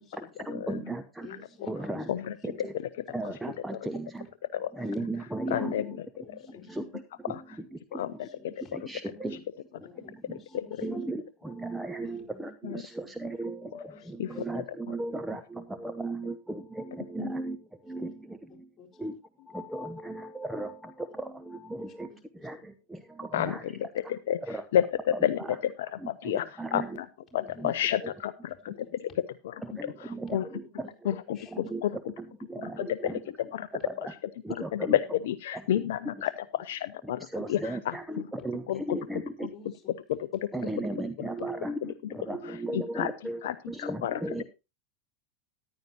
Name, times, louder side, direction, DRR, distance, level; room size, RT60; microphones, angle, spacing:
voice 1, 0.0-1.3 1.7-2.1 2.4-2.7 3.1-4.3 4.7-6.0 6.7-8.3 8.7-9.4 9.8-19.1 19.5-24.1 24.4-24.6 25.1-25.6 26.0-27.0 27.6-27.7 28.0-28.1 29.6-33.3 33.7-34.1 34.4-35.0 35.5-35.6 36.1-36.2 37.0-39.5 40.5-44.4, right 2 dB, 5° right, 7 dB, 0.8 m, -37 dB
voice 2, 1.2-2.7 3.1-3.6 4.7-4.9 6.2-6.8 7.9-8.7 9.1-9.4 9.8-11.0 12.0-13.1 13.9-14.5 17.8-18.1 18.8-19.1 21.8-22.5 26.8-27.0 27.4-27.9 28.7-29.1 29.7-29.8 30.1-30.4 30.8-30.9 31.2-31.7 33.8-34.0 36.2-36.3 37.3-37.4 38.1-38.4 39.5-40.0 40.4-40.7 41.4-41.5 42.4-42.5 42.8-42.9 44.3-44.4, left 4 dB, 20° left, -2 dB, 4.3 m, -53 dB
voice 3, 5.5-5.9 7.3-7.4 7.9-8.3 10.5-10.6 12.6-12.8 14.2-14.3 17.2-17.3 23.3-23.7 24.1-24.4 24.7-24.8 25.2-25.4 25.8-26.5 26.7-27.1 27.3-28.7 29.0-29.1 29.4-29.5 30.0-30.5 31.1-31.9 32.6-33.1 33.5-33.7 34.7-35.0 35.2-37.2 37.5-37.6 37.9-38.0 38.7-39.0 42.7-43.1 43.4-44.2, left 11 dB, 60° left, 15 dB, 0.5 m, -30 dB
14.5 x 10.5 x 2.9 m, 0.27 s
figure-of-eight pair, 85°, 0 cm